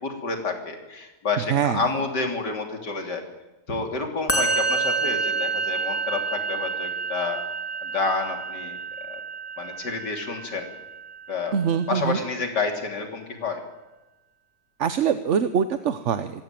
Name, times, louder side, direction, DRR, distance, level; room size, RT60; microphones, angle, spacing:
voice 1, 0.0-3.2 3.7-7.4 7.8-8.8 9.0-9.2 9.6-10.7 11.3-11.5 11.9-13.6, left 4 dB, 85° left, 4 dB, 3.9 m, -29 dB
voice 2, 1.5-1.8 11.5-12.2 14.8-16.4, right 7 dB, 50° right, 11 dB, 1.1 m, -23 dB
Musical instrument, 4.3-11.6, right 4 dB, 10° left, 2.8 m, -29 dB
26.0 x 15.5 x 9.1 m, 1.1 s
omnidirectional pair, 1.8 m